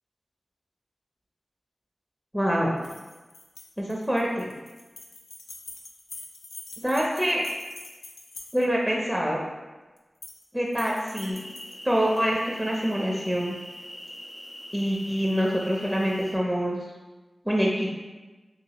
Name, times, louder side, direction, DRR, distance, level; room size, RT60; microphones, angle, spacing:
voice 1, 2.3-2.8 3.8-4.5 6.8-7.4 8.5-9.5 10.5-11.4 11.8-13.5 14.7-16.8 17.4-17.9, equal, 10° right, -2 dB, 0.5 m, -25 dB
sound 1, 2.8-8.9 10.0-10.5 10.7-12.3, left 3 dB, 90° left, 0.3 m, -45 dB
sound 2, 11.3-16.4, equal, 50° left, 0.7 m, -42 dB
2.8 x 2.7 x 2.9 m, 1.2 s
cardioid pair, 45°, 0 cm